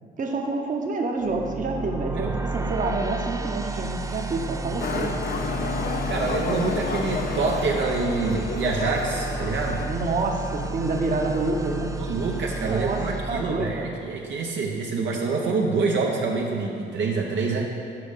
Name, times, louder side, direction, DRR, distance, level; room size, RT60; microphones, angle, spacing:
voice 1, 0.2-5.1 9.9-12.0 12.7-13.9, right 3 dB, 40° right, 1 dB, 1.0 m, -28 dB
sound 1, 1.2-14.3, right 3 dB, 15° right, 0.3 m, -32 dB
Motorcycle, 4.8-9.9, left 5 dB, 45° left, 0.6 m, -30 dB
voice 2, 6.1-9.8 12.0-17.7, right 4 dB, 65° right, -1 dB, 0.8 m, -26 dB
5.8 x 5.2 x 6.5 m, 2.7 s
cardioid pair, 90°, 20 cm